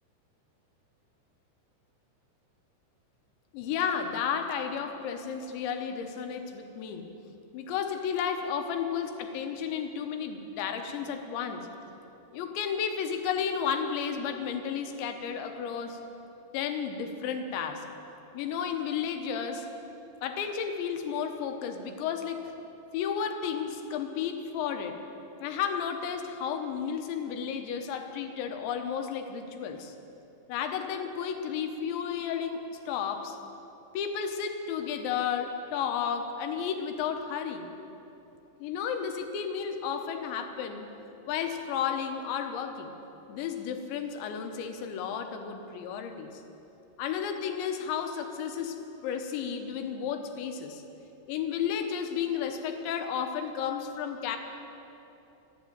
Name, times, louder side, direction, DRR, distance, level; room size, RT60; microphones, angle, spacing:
voice 1, 3.5-7.1 7.5-11.7 12.3-16.0 16.5-17.8 18.3-19.7 20.2-22.5 22.9-25.0 25.4-29.9 30.5-33.4 33.9-37.7 38.6-40.9 41.3-42.9 43.3-46.4 47.0-50.8 51.3-54.4, left 7 dB, 75° left, 5 dB, 3.1 m, -32 dB
14.5 x 11.5 x 9.0 m, 2.9 s
omnidirectional pair, 5.8 m